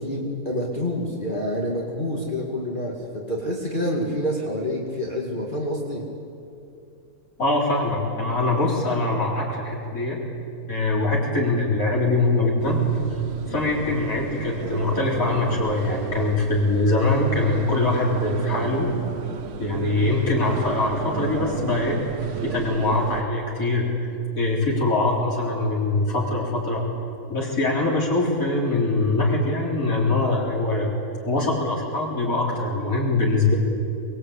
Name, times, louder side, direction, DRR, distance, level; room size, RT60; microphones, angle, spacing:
voice 1, 0.0-6.1, equal, 30° left, -2 dB, 2.5 m, -27 dB
voice 2, 7.4-10.2 10.7-12.8 13.5-18.9 19.6-22.0 22.4-23.9 24.3-26.8 27.3-30.9 31.2-33.6, left 2 dB, 65° left, -3 dB, 4.4 m, -23 dB
sound 1, 12.6-23.2, right 6 dB, 50° right, 1.0 m, -32 dB
26.0 x 21.0 x 8.5 m, 2.7 s
omnidirectional pair, 1.6 m